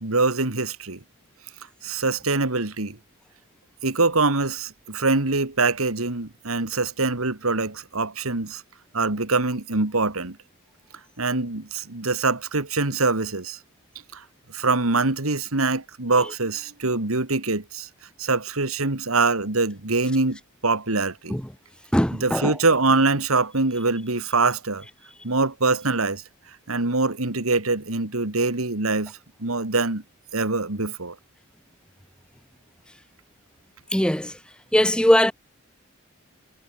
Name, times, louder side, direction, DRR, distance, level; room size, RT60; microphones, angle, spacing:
voice 1, 0.0-1.0 1.8-3.0 3.8-8.6 8.9-10.4 11.2-13.6 14.1-14.2 14.5-17.9 18.2-21.4 22.2-24.8 25.2-26.2 26.7-29.1 29.4-30.0 30.3-31.2, right 3 dB, 80° right, 2.4 m, -24 dB
voice 2, 21.9-22.5 33.9-34.3 34.7-35.3, equal, 5° left, 1.3 m, -20 dB
head